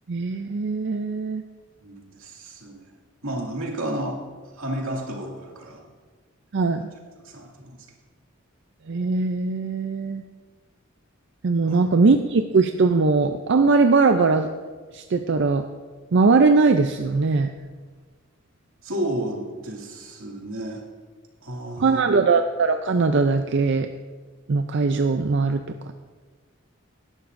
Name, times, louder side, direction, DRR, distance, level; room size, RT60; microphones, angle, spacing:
voice 1, 0.1-1.4 6.5-6.8 8.9-10.2 11.4-14.5 14.9-15.6 16.1-17.5 21.8-23.9 24.5-25.6, right 4 dB, 60° right, 7 dB, 0.5 m, -20 dB
voice 2, 1.8-2.9 3.2-5.8 7.2-7.9 11.7-11.8 18.8-20.9 21.4-22.0, right 1 dB, 90° right, -1 dB, 2.3 m, -32 dB
18.0 x 12.0 x 2.6 m, 1.4 s
head